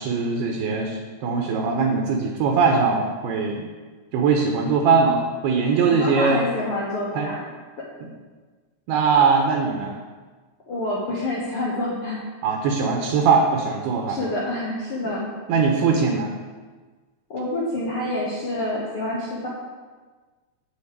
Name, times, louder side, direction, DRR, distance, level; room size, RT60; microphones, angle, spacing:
voice 1, 0.0-3.6 4.1-6.4 7.1-7.3 8.9-9.9 12.4-14.2 15.5-16.3, right 5 dB, 75° right, 1 dB, 2.9 m, -21 dB
voice 2, 5.8-7.5 10.7-12.2 14.1-15.3 17.3-19.5, left 1 dB, 70° left, -6 dB, 1.3 m, -27 dB
8.8 x 5.6 x 8.1 m, 1.4 s
omnidirectional pair, 4.9 m